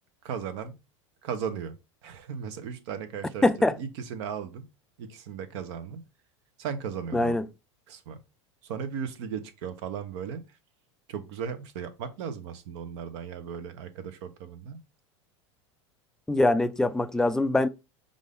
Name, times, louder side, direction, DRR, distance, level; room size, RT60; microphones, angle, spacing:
voice 1, 0.2-0.7 1.2-1.7 2.0-4.7 5.0-6.0 6.6-7.4 7.9-8.2 8.6-10.6 11.1-14.8, right 7 dB, 65° right, 0.9 m, -36 dB
voice 2, 3.4-3.8 7.1-7.4 16.3-17.7, left 2 dB, 5° left, 0.4 m, -23 dB
5.2 x 2.6 x 3.5 m
hypercardioid pair, 95°, 16 cm